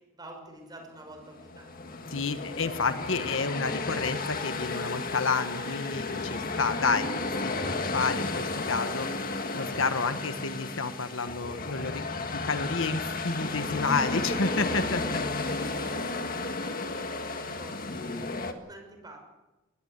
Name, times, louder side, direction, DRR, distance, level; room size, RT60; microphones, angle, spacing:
voice 1, 0.0-1.8 15.5-16.8 17.1-19.2, right 1 dB, 20° right, 3 dB, 5.7 m, -48 dB
sound 1, 1.2-18.5, left 3 dB, 45° left, 1.7 m, -33 dB
voice 2, 2.1-7.2 7.4-9.1 9.5-12.0 12.3-15.0, left 4 dB, 80° left, 10 dB, 1.4 m, -30 dB
20.5 x 17.0 x 8.2 m, 1.1 s
head